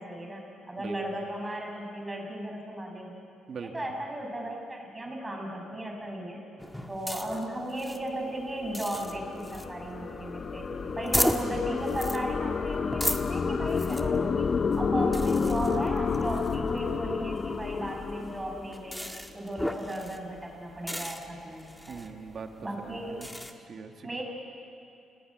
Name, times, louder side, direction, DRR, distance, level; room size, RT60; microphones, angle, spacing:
voice 1, 0.0-3.2 3.6-6.4 6.9-10.7 10.9-14.5 14.8-19.0 19.3-22.0 22.6-23.2 24.0-24.2, right 1 dB, 15° right, 1 dB, 6.5 m, -36 dB
voice 2, 3.5-3.9 7.2-7.4 10.7-11.0 21.9-23.3 23.6-24.2, right 5 dB, 50° right, 4 dB, 2.3 m, -43 dB
sound 1, 6.6-23.5, equal, 5° left, 1.9 m, -37 dB
sound 2, 8.4-19.0, left 5 dB, 40° left, 0.9 m, -30 dB
29.0 x 18.5 x 9.7 m, 2.6 s
cardioid pair, 90°, 0 cm